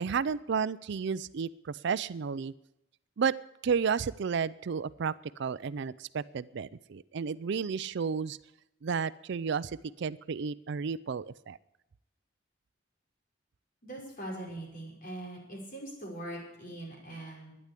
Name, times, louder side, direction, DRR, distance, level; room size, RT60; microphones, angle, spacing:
voice 1, 0.0-2.5 3.2-3.4 3.6-5.1 5.4-8.4 8.8-11.6, right 6 dB, 65° right, 17 dB, 0.4 m, -32 dB
voice 2, 13.8-17.5, right 1 dB, 50° left, -2 dB, 5.5 m, -42 dB
11.5 x 10.0 x 8.3 m, 0.85 s
head